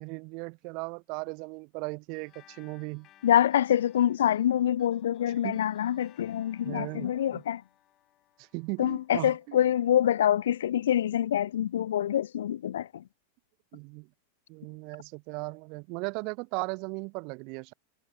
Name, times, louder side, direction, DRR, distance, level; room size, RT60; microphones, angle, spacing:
voice 1, 0.0-3.1 5.4-5.6 6.6-7.4 8.5-9.6 13.7-14.1 14.5-17.7, right 32 dB, 45° right, 0.5 m, -37 dB
sound 1, 2.1-11.0, left 14 dB, 35° left, 7.2 m, -63 dB
voice 2, 3.2-7.6 8.8-13.0, left 11 dB, 60° left, 0.3 m, -26 dB
figure-of-eight pair, 90°, 0 cm